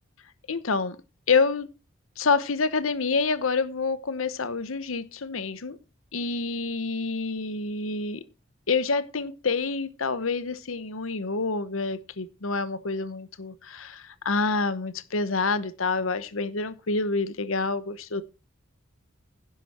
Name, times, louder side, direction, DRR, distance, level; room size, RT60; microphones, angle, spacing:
voice 1, 0.5-1.0 1.3-1.7 2.2-5.8 6.1-8.2 8.7-18.2, left 4 dB, 90° left, 14 dB, 0.9 m, -27 dB
11.0 x 10.5 x 4.3 m, 0.31 s
head